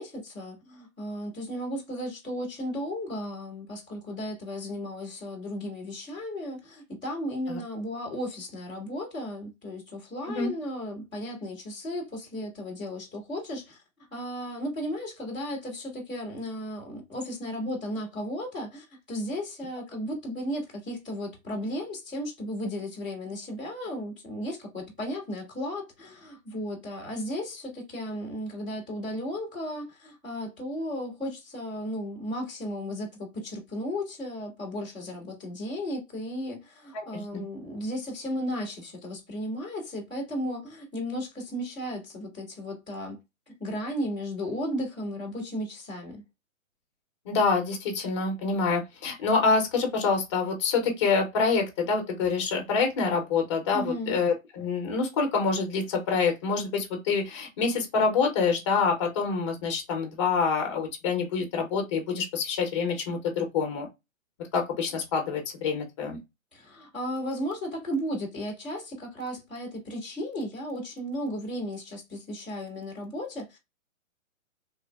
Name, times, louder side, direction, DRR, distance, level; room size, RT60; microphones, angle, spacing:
voice 1, 0.0-13.8 14.1-43.2 43.6-46.2 53.7-54.2 66.5-73.6, equal, 10° right, 0.4 m, -35 dB
voice 2, 36.9-37.4 47.2-63.9 64.5-66.2, left 4 dB, 20° left, 0.7 m, -26 dB
3.2 x 2.1 x 2.2 m
hypercardioid pair, 155°, 41 cm